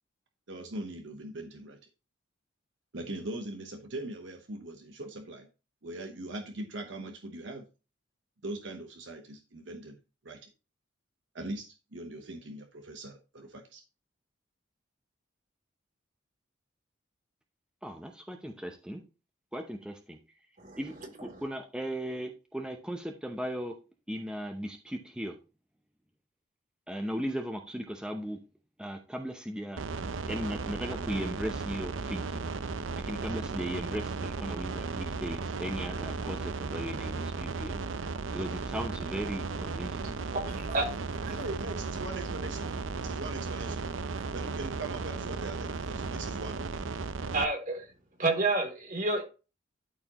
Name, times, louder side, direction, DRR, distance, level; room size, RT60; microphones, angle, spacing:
voice 1, 0.5-1.8 2.9-5.5 5.8-7.6 8.4-10.0 10.2-10.5 11.3-13.8 41.3-43.9 44.3-46.9, right 2 dB, 70° right, 1.0 m, -41 dB
voice 2, 17.8-19.0 19.5-20.2 20.8-20.9 21.2-23.7 24.1-25.4 26.9-28.4 28.8-29.8 30.1-32.5 33.0-37.8 38.3-40.2, equal, 5° right, 0.8 m, -37 dB
sound 1, 29.8-47.4, right 4 dB, 90° right, 0.6 m, -35 dB
voice 3, 40.3-40.9 47.3-47.8 48.2-49.2, right 2 dB, 45° right, 3.0 m, -29 dB
12.5 x 4.5 x 3.0 m
head